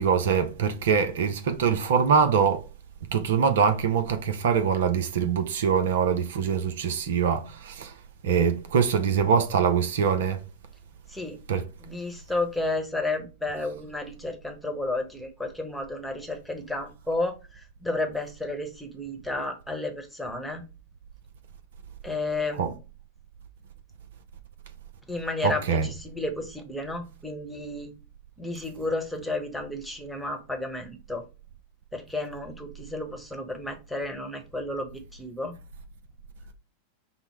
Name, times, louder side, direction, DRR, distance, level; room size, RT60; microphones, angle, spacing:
voice 1, 0.0-2.6 3.1-7.9 8.2-10.4 11.5-11.6 22.6-22.7 25.4-25.9, right 6 dB, 60° right, 0.6 m, -23 dB
voice 2, 11.8-20.7 22.0-22.8 25.1-27.9 28.4-31.2 31.9-35.5, left 2 dB, ahead, 1.1 m, -32 dB
5.5 x 2.1 x 4.4 m
figure-of-eight pair, 90°, 0 cm